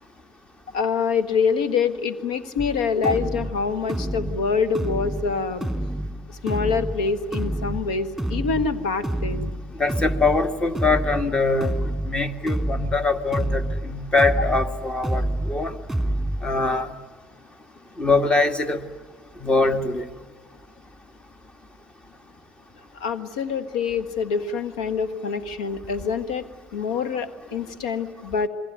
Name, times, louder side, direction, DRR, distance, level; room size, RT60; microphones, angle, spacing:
voice 1, 0.7-5.7 6.3-9.5 22.9-26.4 26.7-28.5, left 5 dB, 85° left, 14 dB, 1.4 m, -25 dB
sound 1, 2.6-16.6, right 1 dB, ahead, 3.4 m, -29 dB
voice 2, 9.8-11.8 12.1-15.7 16.4-16.9 18.0-18.8 19.4-20.0, left 3 dB, 25° left, 9 dB, 2.0 m, -23 dB
28.0 x 21.0 x 9.4 m, 1.3 s
hypercardioid pair, 75°, 3 cm